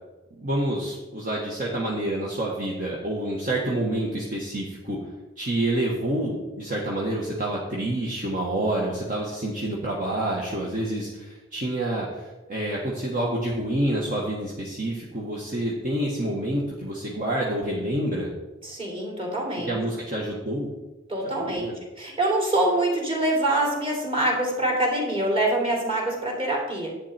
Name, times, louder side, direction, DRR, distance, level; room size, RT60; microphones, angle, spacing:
voice 1, 0.4-5.0 5.4-18.3 19.6-20.7 21.2-21.7, right 1 dB, 45° right, -4 dB, 1.7 m, -28 dB
voice 2, 18.6-19.8 21.1-21.7 22.0-26.9, right 1 dB, 30° right, -1 dB, 3.2 m, -25 dB
11.0 x 8.8 x 4.4 m, 1.1 s
head